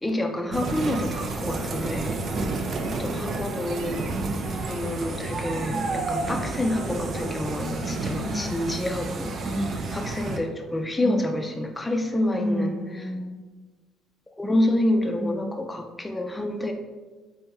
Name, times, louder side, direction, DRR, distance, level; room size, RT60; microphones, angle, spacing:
voice 1, 0.0-2.2 2.9-4.1 4.7-9.6 9.9-12.8 14.4-16.7, left 1 dB, 15° left, 3 dB, 0.4 m, -28 dB
sound 1, 0.5-10.4, right 3 dB, 50° right, 0.4 m, -30 dB
voice 2, 8.1-8.5 9.5-9.8 11.0-11.3 12.3-13.4 15.2-15.6, equal, 15° right, -5 dB, 0.7 m, -31 dB
3.4 x 3.4 x 2.9 m, 1.3 s
supercardioid pair, 80°, 0 cm